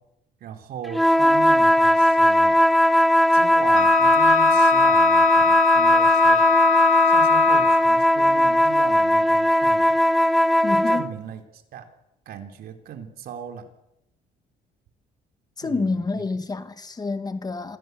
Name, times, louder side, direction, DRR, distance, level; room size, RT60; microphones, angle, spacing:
voice 1, 0.4-2.5 3.3-6.4 7.0-10.0 10.9-11.9 12.3-13.7 15.6-16.2, right 8 dB, 65° right, 3.6 m, -38 dB
sound 1, 0.9-11.1, left 1 dB, ahead, 1.0 m, -18 dB
Wind instrument woodwind instrument, 3.7-8.0, left 9 dB, 55° left, 1.9 m, -22 dB
voice 2, 10.6-11.0 15.6-17.8, left 3 dB, 25° left, 1.9 m, -28 dB
27.5 x 17.5 x 8.2 m
cardioid pair, 110°, 17 cm